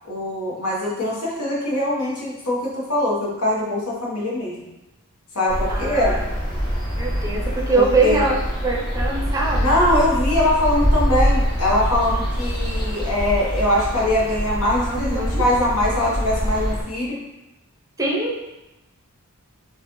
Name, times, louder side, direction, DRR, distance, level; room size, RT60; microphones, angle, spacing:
voice 1, 0.1-4.7 5.3-6.1 7.7-8.2 9.6-17.2, left 1 dB, 85° left, -4 dB, 1.1 m, -22 dB
sound 1, 5.5-16.8, equal, 20° left, 0.9 m, -24 dB
voice 2, 5.7-6.2 7.0-8.4 8.6-9.8 14.9-15.5 18.0-18.4, right 3 dB, 15° right, -2 dB, 0.5 m, -22 dB
4.6 x 2.4 x 3.1 m, 0.98 s
head